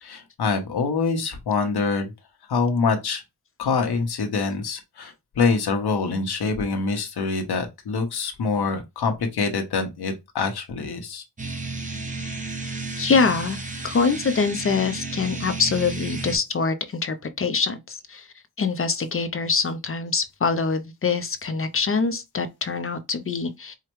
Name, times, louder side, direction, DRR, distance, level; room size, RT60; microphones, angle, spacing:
voice 1, 0.0-2.1 2.5-3.2 3.6-11.2, left 4 dB, 80° left, 1.1 m, -25 dB
sound 1, 11.4-16.4, right 3 dB, 20° right, 0.8 m, -32 dB
voice 2, 13.0-13.6 13.8-18.3 18.6-23.7, left 5 dB, 35° left, 0.5 m, -24 dB
4.8 x 2.1 x 3.1 m
wide cardioid pair, 145°, 38 cm